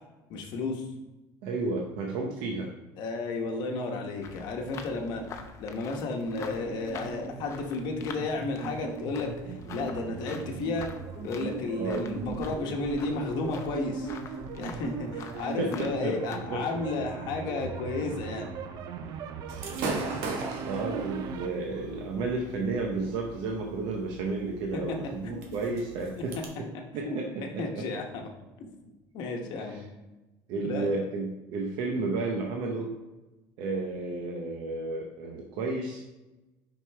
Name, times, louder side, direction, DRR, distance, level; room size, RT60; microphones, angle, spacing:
voice 1, 0.3-0.9 3.0-10.9 11.2-14.1 14.6-18.5 25.2-25.5 27.0-27.2 27.6-28.3 28.6-29.8 30.6-30.9, left 3 dB, 55° left, 2 dB, 1.0 m, -33 dB
voice 2, 1.4-2.7 11.7-12.0 15.3-16.6 19.7-20.1 20.7-26.7 26.9-27.9 29.7-29.8 30.5-32.9 33.6-36.0, right 3 dB, 65° right, 0 dB, 0.8 m, -32 dB
sound 1, 4.2-16.4, left 5 dB, 35° left, 0.6 m, -46 dB
sound 2, 6.3-21.5, right 6 dB, 45° right, 0.5 m, -39 dB
Gunshot gunfire / Fireworks, 19.5-26.5, right 3 dB, 90° right, 1.2 m, -39 dB
6.3 x 5.2 x 3.4 m, 1.1 s
cardioid pair, 160°, 9 cm